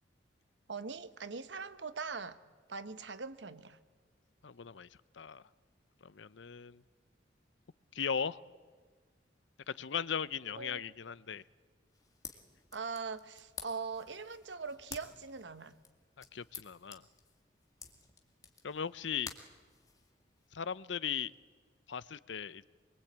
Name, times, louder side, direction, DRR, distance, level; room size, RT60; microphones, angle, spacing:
voice 1, 0.7-2.4 2.7-3.8 10.6-10.8 12.7-15.8, right 4 dB, 70° right, 1.1 m, -41 dB
voice 2, 4.4-4.9 5.1-5.4 6.0-6.8 7.9-8.4 9.7-11.4 16.3-17.0 18.6-19.3 20.5-21.3 21.9-22.6, left 7 dB, 80° left, 0.7 m, -38 dB
sound 1, 11.9-20.5, left 5 dB, 20° left, 2.2 m, -52 dB
25.0 x 22.5 x 8.8 m
head